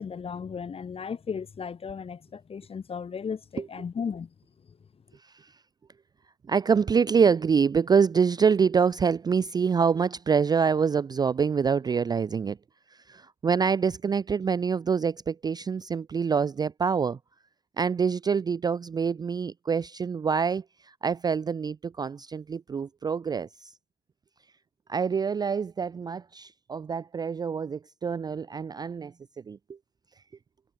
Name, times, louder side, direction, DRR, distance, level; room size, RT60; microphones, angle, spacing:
voice 1, 0.0-4.3, left 6 dB, 35° left, 3.5 m, -35 dB
voice 2, 6.5-12.6 12.9-17.2 17.8-23.7 24.9-29.1 29.5-29.8, right 6 dB, 25° right, 0.4 m, -26 dB
cardioid pair, 110°, 17 cm